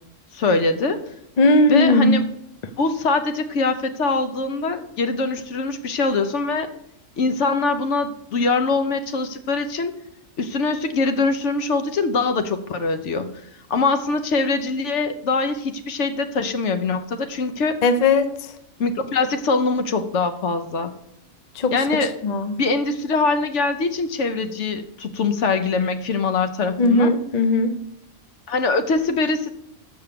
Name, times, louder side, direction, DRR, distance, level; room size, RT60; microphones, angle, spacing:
voice 1, 0.3-1.0 1.7-2.3 2.8-6.7 7.2-9.9 10.4-13.3 13.7-17.8 18.8-20.9 21.7-22.1 22.6-27.1 28.5-29.5, left 3 dB, 65° left, 8 dB, 1.1 m, -23 dB
voice 2, 1.4-2.2 17.8-18.3 21.6-21.7 22.2-22.6 26.8-27.7, left 2 dB, 40° left, 9 dB, 0.6 m, -17 dB
7.0 x 5.8 x 6.8 m, 0.75 s
omnidirectional pair, 1.4 m